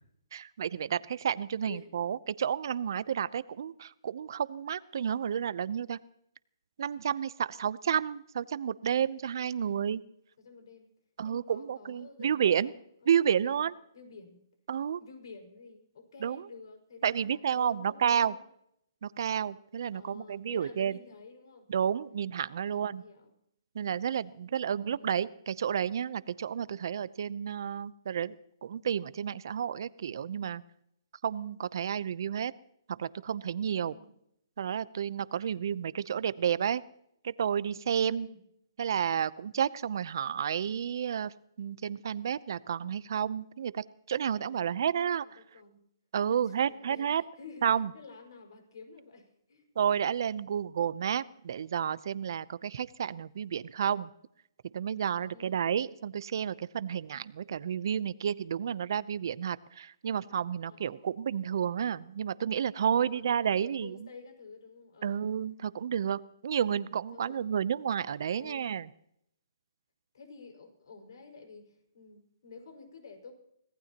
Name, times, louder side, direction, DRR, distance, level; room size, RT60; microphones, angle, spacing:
voice 1, 0.3-6.0 6.8-10.0 11.2-12.7 13.1-13.7 14.7-15.0 16.2-16.4 17.0-18.3 19.0-21.0 21.7-23.0 23.7-28.4 28.6-30.6 31.2-32.5 32.9-34.0 34.6-36.8 37.2-38.3 38.8-45.4 46.1-47.2 47.6-47.9 49.8-54.1 54.7-64.0 65.0-68.9, right 8 dB, 55° right, 17 dB, 0.7 m, -31 dB
voice 2, 10.4-10.9 11.2-14.4 15.0-18.5 19.9-21.7 22.7-23.3 24.6-25.2 33.8-34.1 38.1-38.4 44.4-44.8 45.2-45.8 46.3-49.6 55.2-55.8 60.6-61.1 62.5-65.3 67.1-67.5 68.3-68.7 70.1-73.3, left 4 dB, 70° left, 5 dB, 5.4 m, -51 dB
25.0 x 18.0 x 3.0 m, 0.74 s
hypercardioid pair, 155°, 2 cm